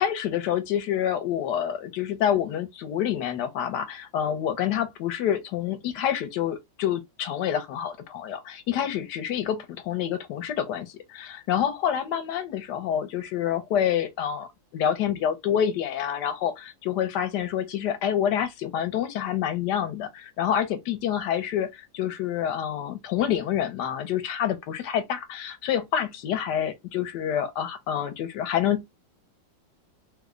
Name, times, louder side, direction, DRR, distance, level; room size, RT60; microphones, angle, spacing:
voice 1, 0.0-28.9, left 9 dB, 70° left, 1.1 m, -27 dB
3.2 x 2.0 x 3.6 m
omnidirectional pair, 2.1 m